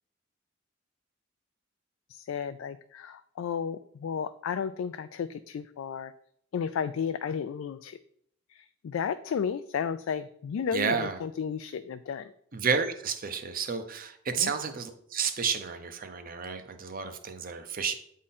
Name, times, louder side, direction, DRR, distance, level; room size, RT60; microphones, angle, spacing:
voice 1, 2.1-6.1 6.5-8.0 8.5-12.3 14.4-14.5, left 7 dB, 75° left, 10 dB, 0.3 m, -33 dB
voice 2, 10.7-11.2 12.5-17.9, right 5 dB, 45° right, 8 dB, 0.7 m, -31 dB
8.5 x 3.7 x 4.2 m, 0.68 s
head